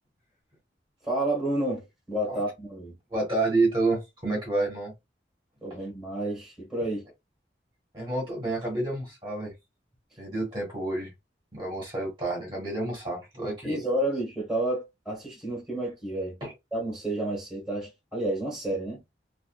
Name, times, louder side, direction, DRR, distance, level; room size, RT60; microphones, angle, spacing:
voice 1, 1.0-2.9 5.6-7.0 13.6-16.4 16.7-19.0, right 1 dB, 5° right, 1.3 m, -30 dB
voice 2, 3.1-4.9 7.9-9.5 10.2-11.1 11.5-13.8 16.4-16.5, right 2 dB, 25° right, 1.2 m, -29 dB
2.5 x 2.5 x 2.3 m
head